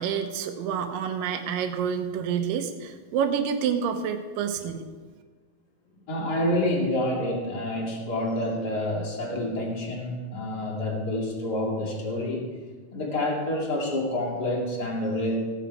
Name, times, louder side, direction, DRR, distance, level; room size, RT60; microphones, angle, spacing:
voice 1, 0.0-4.9, right 7 dB, 85° right, 7 dB, 2.6 m, -28 dB
voice 2, 6.1-12.5 12.9-15.4, left 1 dB, 30° left, -2 dB, 2.7 m, -28 dB
17.0 x 10.0 x 4.7 m, 1.4 s
omnidirectional pair, 3.8 m